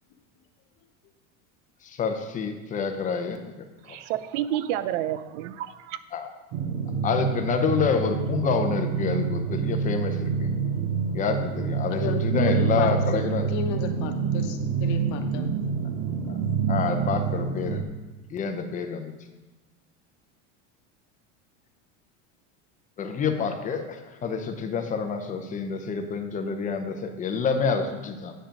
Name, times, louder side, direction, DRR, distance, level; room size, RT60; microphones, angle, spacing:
voice 1, 1.8-3.5 3.8-4.0 6.1-6.3 7.0-10.5 11.1-13.5 16.3-16.4 16.7-17.9 18.3-19.1 23.0-28.3, left 5 dB, 20° left, 6 dB, 0.7 m, -28 dB
voice 2, 3.8-6.0, right 12 dB, 80° right, 14 dB, 0.6 m, -30 dB
sound 1, 6.5-17.8, right 6 dB, 50° right, 0.9 m, -27 dB
voice 3, 11.9-13.2 13.5-15.6, left 7 dB, 60° left, 5 dB, 1.0 m, -32 dB
9.0 x 4.9 x 5.2 m, 1.1 s
supercardioid pair, 145°, 36 cm